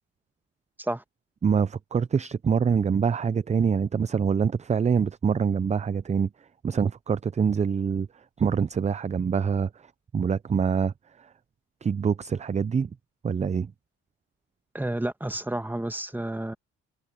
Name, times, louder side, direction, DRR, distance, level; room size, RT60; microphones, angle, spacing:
voice 1, 1.4-6.3 6.6-8.1 8.4-9.7 10.1-10.9 11.8-12.9 13.2-13.7, right 6 dB, 25° right, 0.5 m, -25 dB
voice 2, 14.7-16.5, right 1 dB, 5° right, 1.4 m, -30 dB
cardioid pair, 90°, 30 cm